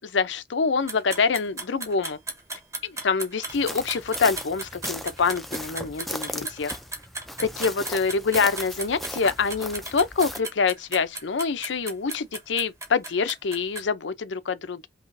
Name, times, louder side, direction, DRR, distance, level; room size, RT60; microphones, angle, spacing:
voice 1, 0.0-2.2 2.8-6.7 7.4-14.9, left 5 dB, 85° left, 0.6 m, -26 dB
sound 1, 0.9-13.8, right 2 dB, 15° right, 1.1 m, -36 dB
sound 2, 3.5-10.4, left 1 dB, ahead, 0.4 m, -37 dB
5.5 x 2.9 x 2.6 m
head